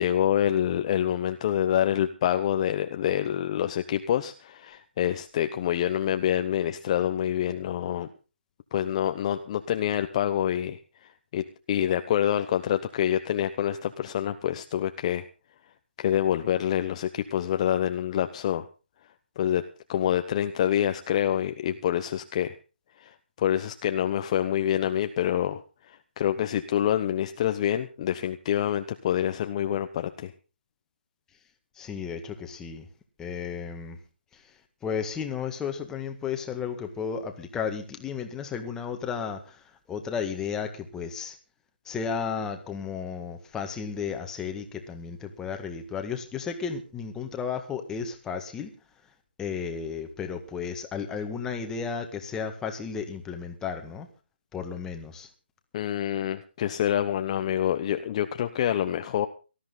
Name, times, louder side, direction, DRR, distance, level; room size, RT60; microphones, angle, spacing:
voice 1, 0.0-8.1 8.7-10.8 11.3-15.2 16.0-18.6 19.4-19.6 19.9-22.5 23.0-25.6 26.2-30.3 55.7-59.3, left 10 dB, 35° left, 8 dB, 0.9 m, -26 dB
voice 2, 31.7-32.9 33.2-34.0 34.3-41.4 41.9-48.7 49.4-54.1 54.5-55.3, left 6 dB, 10° left, 5 dB, 1.8 m, -33 dB
19.0 x 13.5 x 4.0 m, 0.33 s
hypercardioid pair, 155°, 6 cm